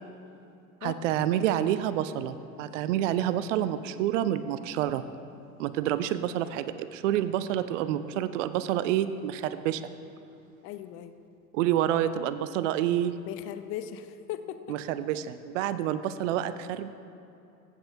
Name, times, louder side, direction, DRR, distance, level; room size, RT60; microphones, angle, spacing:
voice 1, 0.8-5.0 5.6-9.8 11.5-13.1 14.7-16.9, right 11 dB, 55° right, 13 dB, 0.5 m, -28 dB
voice 2, 10.6-11.1 13.2-14.8, left 11 dB, 30° left, 10 dB, 0.5 m, -38 dB
15.5 x 8.1 x 2.7 m, 2.8 s
figure-of-eight pair, 80°, 47 cm